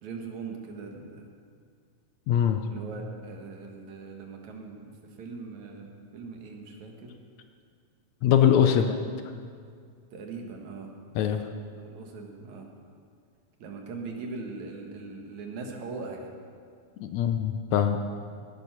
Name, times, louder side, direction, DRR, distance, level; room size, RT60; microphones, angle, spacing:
voice 1, 0.0-1.3 2.7-7.2 8.7-8.8 10.1-10.9 11.7-12.7 13.6-16.3, right 4 dB, 70° right, 2 dB, 2.8 m, -40 dB
voice 2, 2.3-2.6 8.2-9.0 11.2-11.4 17.0-18.0, left 9 dB, 75° left, 7 dB, 1.9 m, -22 dB
17.5 x 11.0 x 5.9 m, 2.2 s
omnidirectional pair, 3.5 m